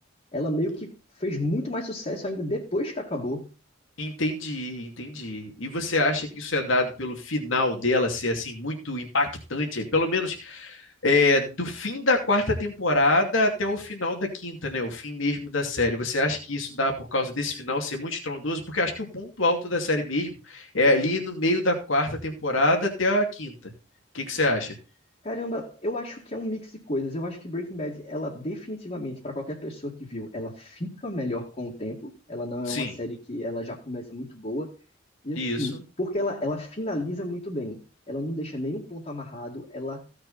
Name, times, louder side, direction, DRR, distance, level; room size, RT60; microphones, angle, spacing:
voice 1, 0.3-3.5 25.2-34.7 35.2-37.8 38.1-40.0, left 1 dB, 35° left, -3 dB, 2.1 m, -32 dB
voice 2, 4.0-23.5 24.1-24.8 32.7-32.9 35.4-35.8, left 2 dB, 80° left, 2 dB, 2.6 m, -25 dB
16.0 x 6.6 x 4.1 m, 0.32 s
head